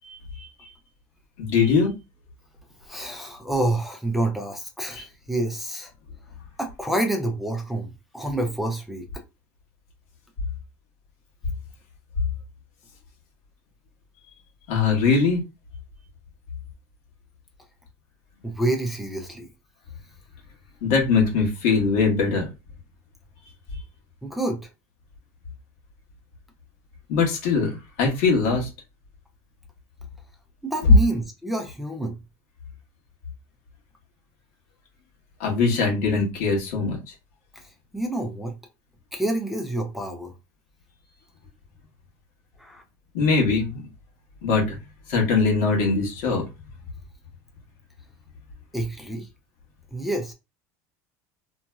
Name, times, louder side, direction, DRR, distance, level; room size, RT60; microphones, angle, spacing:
voice 1, 0.0-0.7 1.4-1.9 5.0-5.1 14.7-15.4 20.8-22.5 27.1-28.7 35.4-37.0 43.1-43.8 44.4-44.8 45.1-46.4, left 4 dB, 70° left, 1.4 m, -22 dB
voice 2, 2.8-5.9 6.6-9.1 18.4-19.5 24.2-24.7 30.6-32.2 37.5-38.5 39.1-40.3 42.6-42.8 48.7-49.3 49.9-50.3, right 1 dB, ahead, 0.5 m, -28 dB
2.9 x 2.7 x 2.3 m
supercardioid pair, 140°, 9 cm